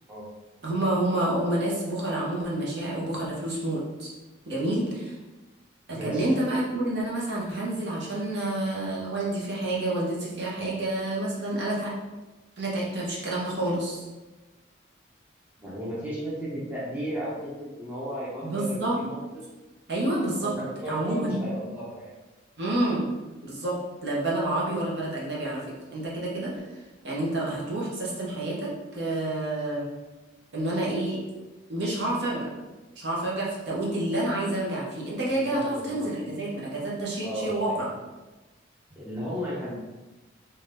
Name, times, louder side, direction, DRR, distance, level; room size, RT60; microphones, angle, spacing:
voice 1, 0.6-4.1 4.4-5.2 5.9-11.9 12.6-14.1 18.4-19.0 19.9-20.5 20.8-21.5 22.6-23.1 23.4-25.6 25.9-26.5 27.0-29.8 30.5-31.2 31.7-32.5 33.0-37.9, right 1 dB, 60° right, -5 dB, 0.7 m, -28 dB
voice 2, 5.9-6.3 15.6-19.4 20.4-22.1 35.3-36.1 37.2-37.7 38.9-39.7, equal, 10° right, -7 dB, 0.6 m, -34 dB
2.7 x 2.3 x 3.2 m, 1.2 s
head